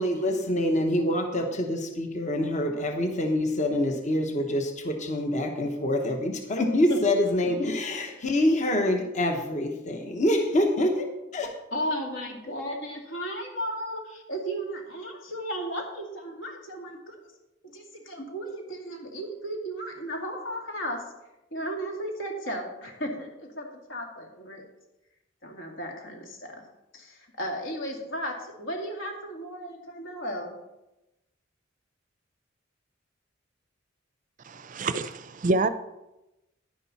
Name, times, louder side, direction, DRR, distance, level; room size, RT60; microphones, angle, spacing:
voice 1, 0.0-11.5, left 1 dB, 40° left, 4 dB, 1.0 m, -26 dB
voice 2, 11.7-17.2 17.6-21.0 21.5-24.6 25.4-26.6 26.9-30.6, equal, 70° left, 1 dB, 2.3 m, -35 dB
voice 3, 34.4-35.7, right 3 dB, 40° right, 12 dB, 0.5 m, -27 dB
10.5 x 10.0 x 4.2 m, 0.95 s
head